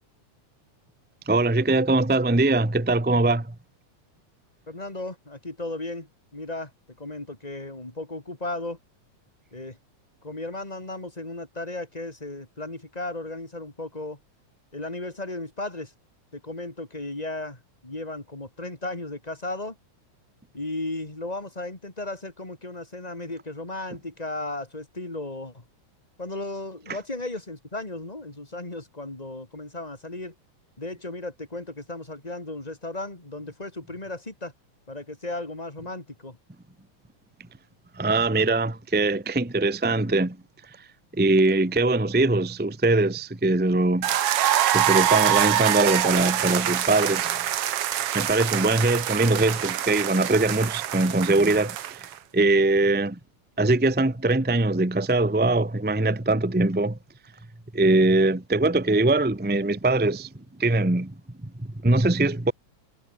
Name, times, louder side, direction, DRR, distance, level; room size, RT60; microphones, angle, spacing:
voice 1, 1.3-3.5 38.0-40.4 41.2-44.1 44.7-47.4 48.1-53.2 53.6-57.0 57.7-60.3 60.6-61.1 61.4-62.5, right 2 dB, 10° right, 0.4 m, -22 dB
voice 2, 4.7-6.7 7.0-8.8 9.5-9.8 10.2-14.2 14.7-15.9 16.3-19.8 20.5-25.6 26.2-30.3 30.8-34.5 34.9-36.4, left 2 dB, 15° left, 3.6 m, -35 dB
sound 1, 44.0-52.1, right 11 dB, 60° right, 1.9 m, -25 dB
omnidirectional pair, 3.3 m